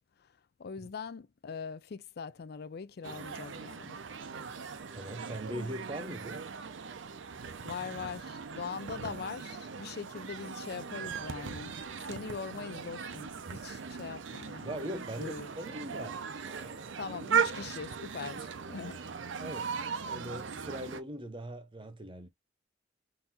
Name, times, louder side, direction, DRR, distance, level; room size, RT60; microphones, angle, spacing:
voice 1, 0.6-4.0 7.6-11.7 12.0-15.5 17.0-19.0, left 5 dB, 55° left, 0.4 m, -42 dB
sound 1, 3.0-21.0, right 6 dB, 80° right, 0.6 m, -38 dB
voice 2, 4.9-6.5 14.6-17.0 19.3-19.8 20.0-22.3, right 1 dB, 25° right, 0.8 m, -41 dB
3.9 x 2.7 x 4.1 m
head